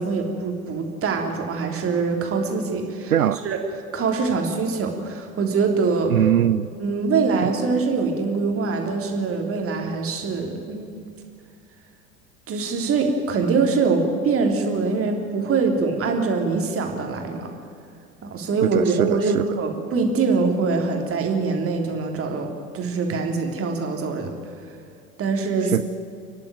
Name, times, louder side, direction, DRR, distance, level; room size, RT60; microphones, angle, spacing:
voice 1, 0.0-3.6 3.9-6.1 6.8-10.9 12.5-17.5 18.2-24.3 25.2-25.8, right 4 dB, 30° right, 3 dB, 3.5 m, -23 dB
voice 2, 3.1-3.4 6.1-6.7 18.6-19.4 25.6-25.8, right 10 dB, 80° right, 14 dB, 0.6 m, -21 dB
29.5 x 11.5 x 9.3 m, 2.4 s
figure-of-eight pair, 75°, 43 cm